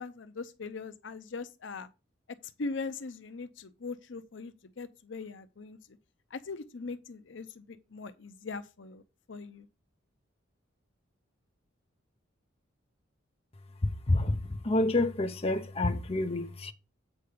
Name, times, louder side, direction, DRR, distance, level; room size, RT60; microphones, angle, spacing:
voice 1, 0.0-1.9 2.6-5.8 6.3-9.0 9.3-9.7, left 4 dB, 70° left, 0.7 m, -40 dB
voice 2, 14.1-16.7, left 2 dB, 30° left, 0.7 m, -28 dB
8.2 x 4.7 x 5.0 m
head